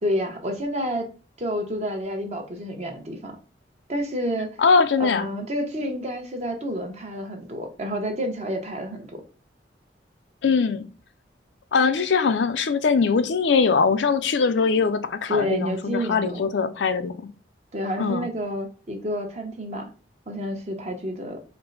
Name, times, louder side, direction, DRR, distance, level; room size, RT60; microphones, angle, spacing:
voice 1, 0.0-1.1 1.4-3.4 3.9-4.5 5.0-9.2 15.3-16.4 17.7-19.9 20.3-21.4, equal, 40° right, 0.9 m, -29 dB
voice 2, 4.6-5.3 10.4-10.9 11.7-17.2 18.0-18.2, left 5 dB, 80° left, 0.5 m, -21 dB
4.4 x 2.1 x 3.9 m
head